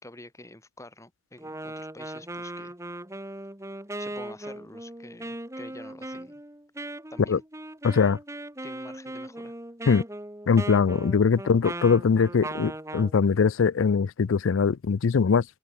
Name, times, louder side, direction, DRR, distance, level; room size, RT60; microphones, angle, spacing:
voice 1, 0.0-2.7 4.0-6.3 7.1-7.4 8.6-9.5, left 1 dB, 15° left, 6.5 m, -47 dB
Wind instrument woodwind instrument, 1.4-13.1, right 1 dB, 15° right, 2.3 m, -38 dB
voice 2, 7.8-8.2 9.9-10.0 10.5-15.4, left 5 dB, 80° left, 0.4 m, -22 dB
head